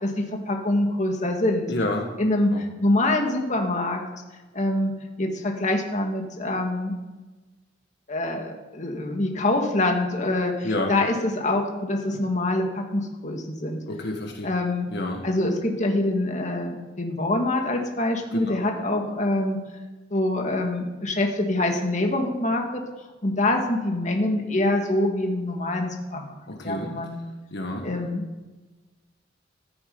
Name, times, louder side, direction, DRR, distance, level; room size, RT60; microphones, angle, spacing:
voice 1, 0.0-1.7 2.2-4.0 4.5-4.9 5.2-6.9 8.1-13.8 14.4-14.9 15.2-19.6 20.1-22.8 23.2-26.3 26.6-27.2 27.8-28.2, left 1 dB, 40° left, 2 dB, 2.0 m, -25 dB
voice 2, 1.7-2.1 2.5-2.6 10.6-10.9 13.9-14.5 14.9-15.2 18.3-18.7 26.5-26.9 27.5-27.8, left 1 dB, 60° left, 2 dB, 1.7 m, -29 dB
14.5 x 11.0 x 5.5 m, 1.2 s
head